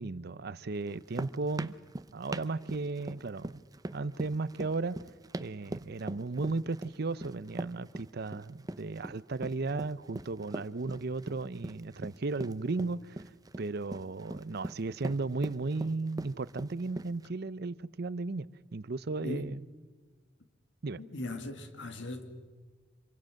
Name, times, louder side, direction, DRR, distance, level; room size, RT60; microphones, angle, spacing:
voice 1, 0.0-1.7 2.1-3.6 3.9-5.0 5.4-13.2 13.6-19.7 20.8-21.0, right 3 dB, 60° right, 0.7 m, -35 dB
sound 1, 0.9-17.3, right 1 dB, 20° right, 0.7 m, -42 dB
voice 2, 21.0-22.2, left 2 dB, 85° left, 2.2 m, -39 dB
26.5 x 23.5 x 6.5 m
head